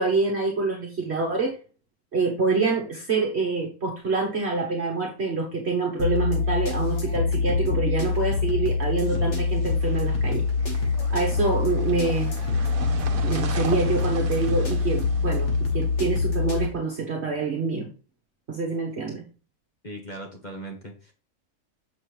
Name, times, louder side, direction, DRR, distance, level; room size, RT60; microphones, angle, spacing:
voice 1, 0.0-1.6 2.1-12.3 13.2-15.5 15.7-17.9 18.5-19.2, right 3 dB, 45° right, 0 dB, 1.4 m, -26 dB
sound 1, 6.0-16.7, left 4 dB, 50° left, 1.8 m, -25 dB
sound 2, 9.6-16.6, right 6 dB, 70° right, 1.3 m, -38 dB
voice 2, 19.8-21.1, right 1 dB, 35° left, 0 dB, 1.1 m, -38 dB
7.6 x 5.3 x 3.2 m, 0.36 s
omnidirectional pair, 1.6 m